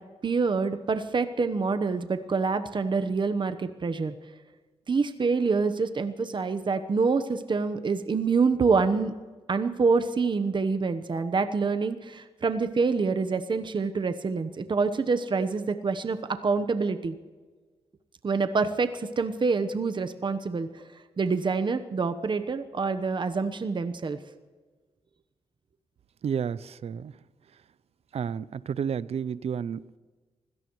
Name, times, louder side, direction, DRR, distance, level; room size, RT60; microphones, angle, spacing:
voice 1, 0.2-4.1 4.9-9.1 9.5-17.1 18.2-20.7 21.2-24.2, right 4 dB, 45° right, 9 dB, 1.0 m, -26 dB
voice 2, 26.2-27.1 28.1-30.0, right 7 dB, 65° right, 19 dB, 0.5 m, -31 dB
25.0 x 17.0 x 3.1 m, 1.4 s
cardioid pair, 65°, 11 cm